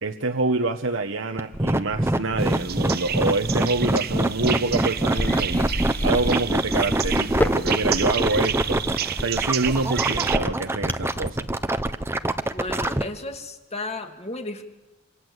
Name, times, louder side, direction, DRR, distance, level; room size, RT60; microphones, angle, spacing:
voice 1, 0.0-5.7 6.0-8.8 9.2-11.5, right 3 dB, 75° right, 5 dB, 1.2 m, -26 dB
sound 1, 1.4-13.0, right 1 dB, 15° right, 0.9 m, -24 dB
sound 2, 2.4-10.4, right 9 dB, 50° right, 0.9 m, -30 dB
sound 3, 5.1-11.2, equal, 10° left, 1.1 m, -29 dB
voice 2, 12.5-14.6, left 2 dB, 35° left, 4 dB, 2.6 m, -34 dB
27.0 x 27.0 x 8.1 m, 1.1 s
head